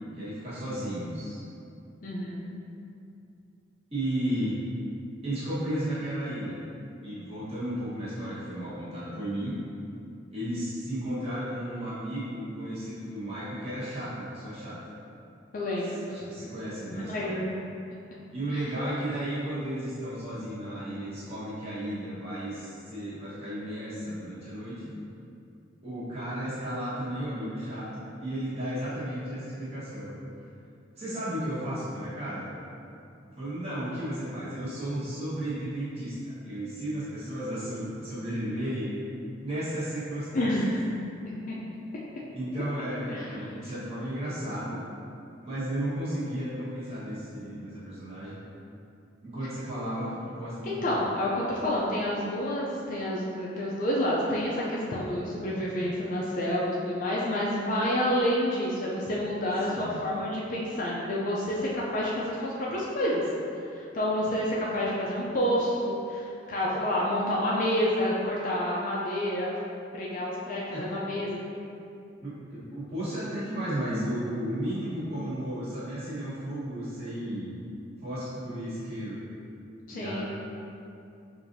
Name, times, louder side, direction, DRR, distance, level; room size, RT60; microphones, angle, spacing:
voice 1, 0.2-1.4 3.9-4.6 5.2-6.6 7.0-9.6 10.3-14.8 16.1-17.4 18.3-24.7 25.8-27.9 28.2-30.2 31.0-32.6 33.3-38.9 39.4-40.5 42.3-44.8 45.4-48.4 49.2-50.9 59.7-60.0 70.7-71.1 72.2-77.6 78.0-79.2 79.9-80.2, right 1 dB, 30° right, -11 dB, 1.2 m, -34 dB
voice 2, 2.0-2.4 15.5-16.0 16.8-17.5 18.5-18.6 40.3-40.8 41.2-41.5 43.1-43.5 50.6-63.2 63.7-69.5 69.9-71.4 79.9-80.2, left 1 dB, 45° left, -5 dB, 0.4 m, -29 dB
4.8 x 2.5 x 2.6 m, 2.6 s
head